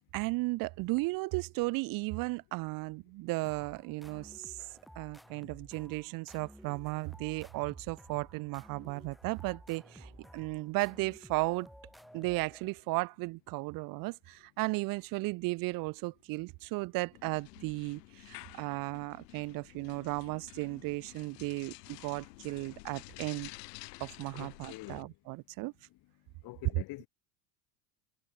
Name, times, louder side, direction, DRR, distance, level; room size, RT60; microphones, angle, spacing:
voice 1, 0.1-4.6 5.0-11.7 12.1-23.5 24.0-25.7, right 24 dB, 45° right, 0.5 m, -35 dB
sound 1, 3.4-13.0, equal, ahead, 3.3 m, -54 dB
sound 2, 17.1-25.0, left 23 dB, 85° left, 0.6 m, -51 dB
voice 2, 24.3-25.1 26.4-27.1, left 19 dB, 50° left, 0.9 m, -45 dB
supercardioid pair, 95°, 48 cm